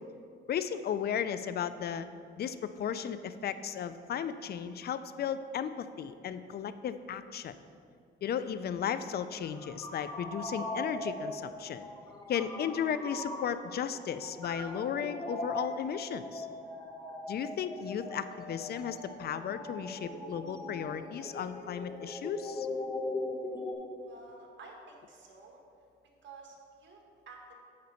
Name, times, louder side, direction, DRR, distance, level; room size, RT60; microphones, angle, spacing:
voice 1, 0.5-2.1 2.4-7.5 8.2-11.9 12.3-16.5 17.3-22.7, left 8 dB, 55° left, 12 dB, 0.5 m, -35 dB
sound 1, 9.3-23.7, left 1 dB, 20° left, 1.7 m, -40 dB
voice 2, 24.0-25.6 26.2-27.6, right 3 dB, 65° right, 1 dB, 1.7 m, -52 dB
9.4 x 3.9 x 6.9 m, 2.3 s
cardioid pair, 90°, 20 cm